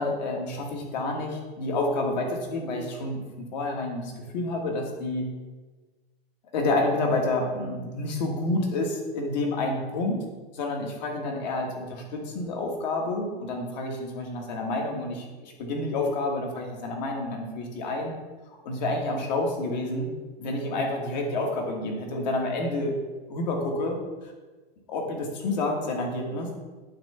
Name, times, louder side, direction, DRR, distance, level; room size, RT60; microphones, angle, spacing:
voice 1, 0.0-3.2 3.5-5.2 6.5-10.2 10.5-18.1 18.5-20.1 20.4-22.9 23.3-24.0 24.2-24.3 24.9-26.5, left 2 dB, 45° left, 1 dB, 1.6 m, -29 dB
8.7 x 3.3 x 6.7 m, 1.3 s
supercardioid pair, 175°, 31 cm